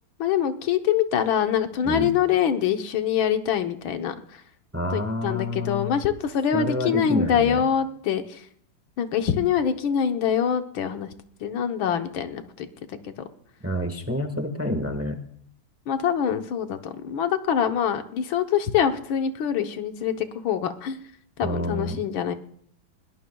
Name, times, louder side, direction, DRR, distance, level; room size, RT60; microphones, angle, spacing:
voice 1, 0.2-4.4 4.9-8.5 9.0-11.1 11.4-13.1 15.9-21.0 21.4-22.3, left 8 dB, 85° left, 7 dB, 1.8 m, -25 dB
voice 2, 4.7-5.9 6.5-7.6 13.6-15.2 21.4-22.0, left 1 dB, 10° right, 7 dB, 1.0 m, -28 dB
21.0 x 17.5 x 2.3 m, 0.64 s
omnidirectional pair, 2.1 m